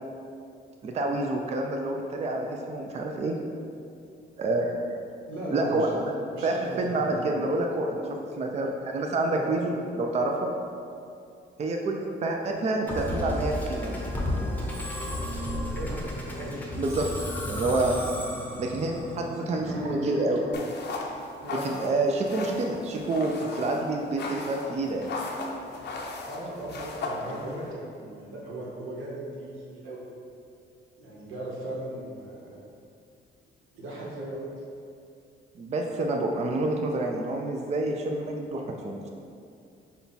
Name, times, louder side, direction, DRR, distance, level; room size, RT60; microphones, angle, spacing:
voice 1, 0.8-3.3 4.4-4.8 5.5-5.9 6.4-8.0 8.4-10.5 11.6-14.0 16.8-17.1 17.5-17.9 18.6-20.4 21.6-25.1 35.6-39.1, right 2 dB, 35° right, 2 dB, 0.4 m, -28 dB
voice 2, 5.3-6.0 6.3-7.3 9.3-9.8 10.3-10.5 12.3-13.1 15.0-17.1 17.8-18.2 18.8-19.1 19.6-20.5 21.4-21.8 26.3-30.0 31.0-32.6 33.7-34.4, right 1 dB, 90° right, -5 dB, 1.1 m, -38 dB
Musical instrument, 12.9-20.2, left 1 dB, 10° left, 0.7 m, -33 dB
sound 1, 20.5-27.7, left 3 dB, 60° left, 0.6 m, -37 dB
5.4 x 2.3 x 4.0 m, 2.5 s
cardioid pair, 90°, 20 cm